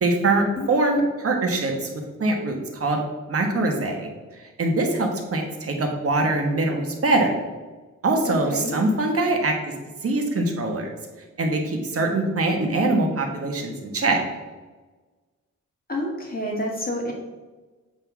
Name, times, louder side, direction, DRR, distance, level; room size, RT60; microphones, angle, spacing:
voice 1, 0.0-1.9 2.2-3.0 3.3-4.1 4.6-7.4 8.0-9.5 10.0-10.9 11.4-14.2, right 2 dB, 50° right, 2 dB, 1.3 m, -23 dB
voice 2, 8.2-8.7 15.9-17.1, left 1 dB, 30° left, 0 dB, 1.7 m, -28 dB
7.8 x 3.5 x 6.1 m, 1.3 s
wide cardioid pair, 125°, 30 cm